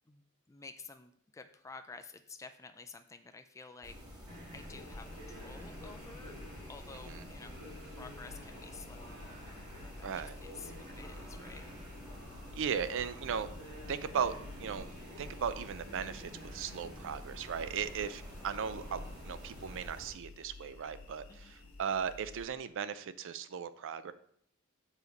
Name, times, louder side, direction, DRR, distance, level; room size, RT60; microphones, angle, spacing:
voice 1, 0.1-6.3 6.7-7.6 7.9-9.2 9.8-10.1 10.4-11.7 21.3-21.5, left 4 dB, 15° left, 7 dB, 0.3 m, -51 dB
sound 1, 3.8-20.1, left 1 dB, 20° right, 1.8 m, -49 dB
sound 2, 4.3-19.8, equal, 80° right, 2.2 m, -52 dB
sound 3, 4.5-22.5, left 3 dB, 75° left, 1.3 m, -54 dB
voice 2, 10.0-10.4 12.5-13.5 13.9-14.3 14.6-14.9 15.2-24.1, right 7 dB, 60° right, 13 dB, 0.4 m, -37 dB
6.5 x 4.9 x 4.0 m, 0.68 s
head